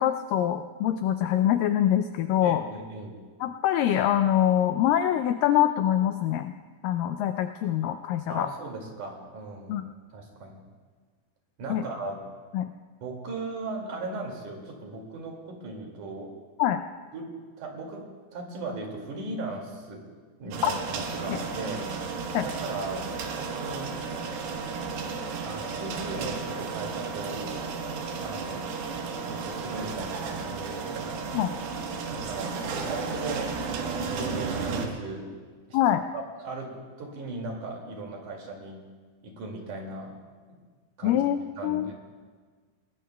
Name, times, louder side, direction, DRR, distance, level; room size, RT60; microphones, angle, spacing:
voice 1, 0.0-2.6 3.4-6.5 6.8-8.5 9.7-9.8 11.7-11.8 12.5-12.7 16.6-16.8 20.6-20.7 21.3-21.4 22.3-22.5 31.3-31.5 35.7-36.0 41.0-41.4 41.6-41.9, left 11 dB, 80° left, 8 dB, 2.0 m, -24 dB
voice 2, 2.4-3.2 8.3-10.6 11.6-12.2 13.0-16.3 17.1-18.0 18.3-20.0 20.4-21.9 22.4-24.0 25.4-27.4 28.2-28.7 29.1-31.1 32.1-33.5 34.0-35.3 35.7-35.8 36.1-38.8 39.2-40.1 40.5-40.6 41.0-41.2 41.6-41.9, right 3 dB, 55° right, 0 dB, 3.7 m, -37 dB
sound 1, 20.5-34.9, right 4 dB, 85° right, 3.3 m, -33 dB
25.5 x 20.0 x 2.3 m, 1.5 s
omnidirectional pair, 4.3 m